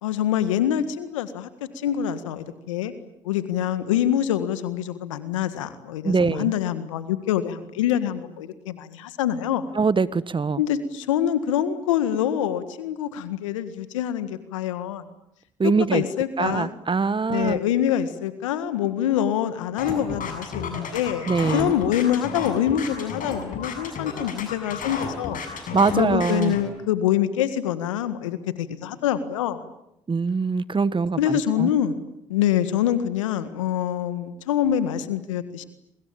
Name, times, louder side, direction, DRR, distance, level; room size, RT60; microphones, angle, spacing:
voice 1, 0.0-1.5 1.8-2.9 3.3-9.7 10.6-15.0 15.6-16.7 17.3-25.4 25.9-29.6 31.2-32.0 32.3-35.6, left 10 dB, 85° left, 12 dB, 1.7 m, -25 dB
voice 2, 6.0-6.5 9.7-10.6 15.6-16.0 16.4-17.6 21.3-21.7 25.7-26.6 30.1-31.7, right 4 dB, 30° right, 17 dB, 1.4 m, -23 dB
sound 1, 19.8-26.6, left 5 dB, 60° left, 7.0 m, -32 dB
27.5 x 24.5 x 8.8 m, 0.81 s
hypercardioid pair, 45°, 16 cm